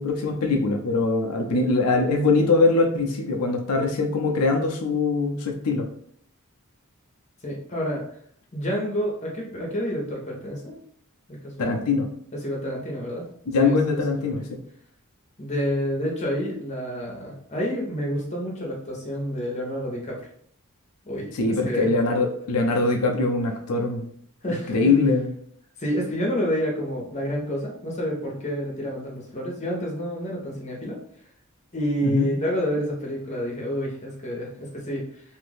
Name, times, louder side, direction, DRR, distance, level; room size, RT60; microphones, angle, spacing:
voice 1, 0.0-5.9 11.6-12.1 13.5-14.6 21.3-24.1 24.5-25.3 32.0-32.3, left 3 dB, 90° left, 2 dB, 0.5 m, -22 dB
voice 2, 7.4-8.0 8.5-10.8 11.3-11.8 12.3-13.2 13.6-14.4 15.4-20.3 21.0-21.9 24.4-24.8 25.8-31.0 31.7-35.0, equal, 30° left, -2 dB, 0.9 m, -29 dB
2.7 x 2.5 x 3.4 m, 0.63 s
head